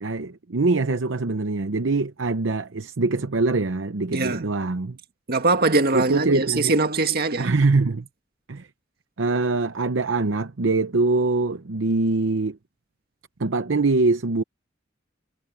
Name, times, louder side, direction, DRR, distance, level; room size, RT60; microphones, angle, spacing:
voice 1, 0.0-5.0 5.9-6.8 7.4-8.1 8.5-8.7 9.2-12.6 13.4-14.4, right 3 dB, 70° right, 0.8 m, -23 dB
voice 2, 4.1-4.5 5.3-7.5, right 3 dB, 50° right, 1.9 m, -22 dB
head